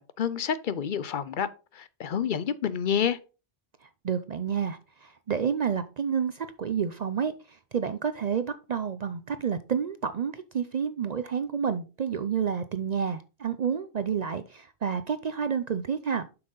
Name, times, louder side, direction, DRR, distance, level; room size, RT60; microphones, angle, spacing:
voice 1, 0.0-1.5 1.7-3.2, left 8 dB, 55° left, 0.7 m, -28 dB
voice 2, 3.8-16.3, right 7 dB, 55° right, 0.5 m, -30 dB
7.4 x 5.9 x 3.9 m
omnidirectional pair, 1.1 m